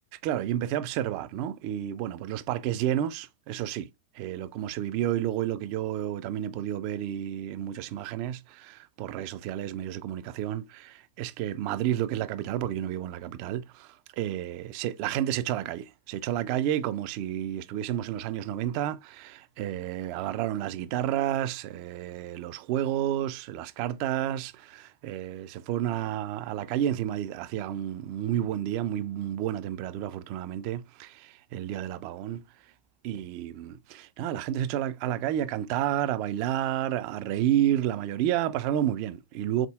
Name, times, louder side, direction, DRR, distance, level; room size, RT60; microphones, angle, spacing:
voice 1, 0.2-3.9 4.1-32.4 33.0-39.7, right 11 dB, 45° right, 0.4 m, -30 dB
4.0 x 3.6 x 2.3 m
figure-of-eight pair, 90°, 0 cm